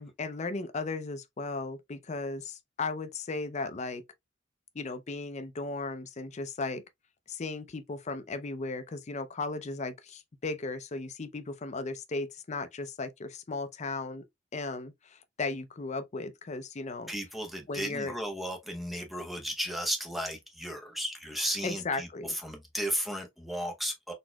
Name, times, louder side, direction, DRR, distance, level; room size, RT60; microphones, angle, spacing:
voice 1, 0.0-4.0 4.7-6.8 7.3-14.2 14.5-17.1 17.7-18.1 21.6-22.4, left 3 dB, 35° left, 0.5 m, -36 dB
voice 2, 17.1-24.1, equal, ahead, 0.7 m, -34 dB
4.1 x 2.9 x 2.2 m
head